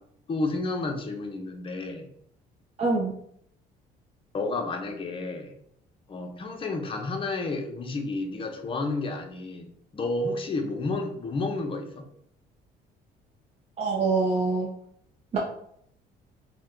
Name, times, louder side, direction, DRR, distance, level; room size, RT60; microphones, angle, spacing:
voice 1, 0.3-2.1 4.3-5.5 6.1-12.0, left 2 dB, 30° left, 3 dB, 0.6 m, -31 dB
voice 2, 2.8-3.1 13.8-14.7 15.3-15.4, right 3 dB, 35° right, -3 dB, 0.6 m, -24 dB
2.8 x 2.2 x 3.6 m, 0.70 s
cardioid pair, 110°, 17 cm